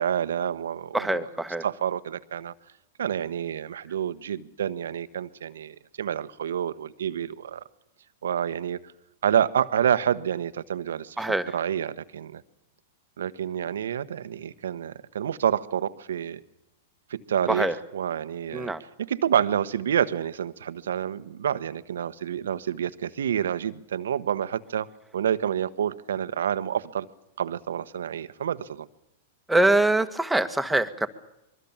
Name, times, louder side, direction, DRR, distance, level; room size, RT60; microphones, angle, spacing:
voice 1, 0.0-1.2 1.6-2.5 3.0-7.6 8.2-8.9 9.2-11.2 11.5-12.4 13.2-16.4 17.1-17.7 17.9-18.7 19.0-24.9 25.1-27.1 27.4-28.9, right 9 dB, 75° right, 14 dB, 1.2 m, -28 dB
voice 2, 0.9-1.6 11.2-11.5 17.5-17.8 18.5-18.8 29.5-31.1, right 2 dB, 5° right, 8 dB, 1.8 m, -24 dB
25.0 x 23.0 x 7.2 m, 0.87 s
hypercardioid pair, 110°, 0 cm